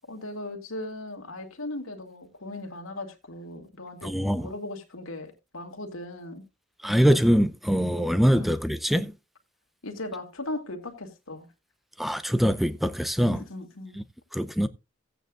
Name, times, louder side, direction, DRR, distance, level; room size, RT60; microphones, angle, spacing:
voice 1, 0.1-6.4 8.4-8.5 9.8-11.5 13.3-14.0, left 2 dB, 85° left, 2.4 m, -38 dB
voice 2, 4.0-4.5 6.8-9.1 12.0-13.4 14.3-14.7, equal, ahead, 0.5 m, -23 dB
16.0 x 9.1 x 2.5 m
head